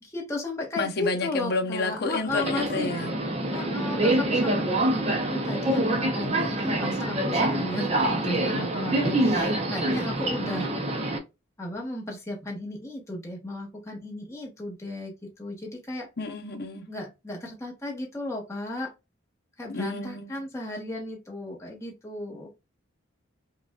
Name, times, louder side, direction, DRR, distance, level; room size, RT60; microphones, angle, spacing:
voice 1, 0.0-2.9 3.5-10.7 11.6-15.1 15.4-16.1 16.9-18.9 19.6-22.5, left 1 dB, 15° left, 1.0 m, -34 dB
voice 2, 0.8-3.1 16.2-16.8 19.7-20.4, left 3 dB, 50° left, 0.7 m, -30 dB
Subway metro underground, 2.3-11.2, right 1 dB, 30° right, 0.6 m, -26 dB
4.9 x 2.4 x 2.3 m
head